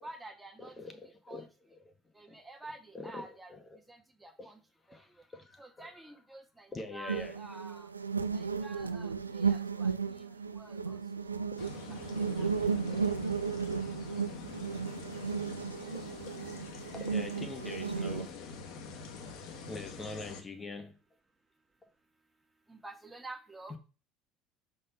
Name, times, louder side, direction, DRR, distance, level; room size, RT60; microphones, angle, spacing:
voice 1, 0.0-0.7 1.3-1.5 2.1-3.5 3.9-4.6 4.9-5.0 5.6-7.9 8.3-11.5 11.9-12.0 12.3-12.5 22.7-23.7, right 2 dB, 10° right, 1.5 m, -49 dB
voice 2, 0.6-1.8 2.3-2.4 2.9-3.8 4.4-4.5 4.9-5.9 6.7-7.4 12.9-13.1 16.9-18.4 19.7-20.9 23.7-23.8, left 3 dB, 25° left, 1.1 m, -44 dB
sound 1, 7.1-18.3, right 5 dB, 85° right, 0.4 m, -34 dB
sound 2, 11.6-20.4, left 5 dB, 55° left, 1.2 m, -46 dB
6.4 x 3.9 x 5.5 m
figure-of-eight pair, 65°, 0 cm